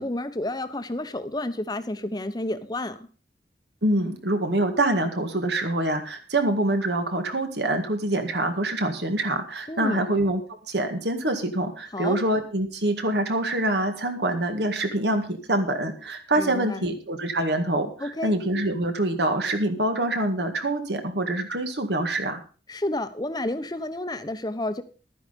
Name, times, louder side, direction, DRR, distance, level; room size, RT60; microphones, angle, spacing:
voice 1, 0.0-3.0 9.7-10.0 11.9-12.2 16.4-16.9 18.0-18.3 22.7-24.8, left 1 dB, 20° left, 10 dB, 1.0 m, -30 dB
voice 2, 3.8-10.4 10.7-22.4, right 1 dB, 70° right, 6 dB, 2.0 m, -25 dB
12.0 x 10.0 x 5.2 m, 0.37 s
head